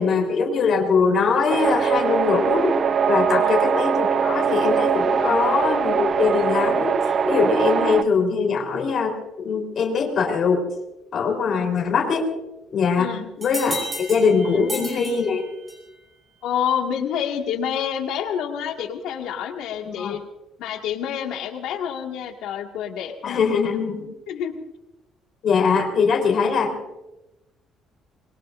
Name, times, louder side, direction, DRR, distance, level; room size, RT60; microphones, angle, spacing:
voice 1, 0.0-2.8 3.1-7.0 7.3-10.6 11.1-12.3 12.7-13.1 13.4-15.4 19.8-20.2 23.2-24.1 25.4-26.9, left 5 dB, 45° left, 2 dB, 3.8 m, -22 dB
sound 1, 1.5-8.0, right 6 dB, 35° right, 0.6 m, -21 dB
voice 2, 13.0-13.3 14.4-14.7 16.4-20.2 20.6-23.4 24.3-24.6, left 8 dB, 85° left, 2 dB, 2.0 m, -28 dB
sound 2, 13.4-16.0, equal, 15° right, 5.9 m, -33 dB
25.5 x 22.0 x 2.6 m, 0.97 s
cardioid pair, 160°, 0 cm